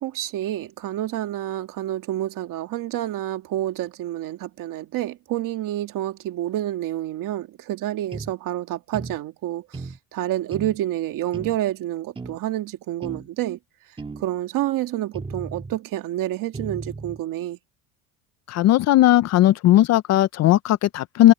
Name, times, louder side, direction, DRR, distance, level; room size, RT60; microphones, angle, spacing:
voice 1, 0.0-13.6 14.2-17.6, right 13 dB, 55° right, 2.4 m, -28 dB
sound 1, 8.1-8.3 8.9-9.2 9.7-10.0 10.5-10.8 11.3-11.6 12.2-12.4 13.0-13.3 14.0-14.3 15.1-15.8 16.5-17.2, right 3 dB, 15° right, 2.1 m, -35 dB
voice 2, 18.5-21.3, left 14 dB, 45° left, 0.5 m, -17 dB
cardioid pair, 150°, 38 cm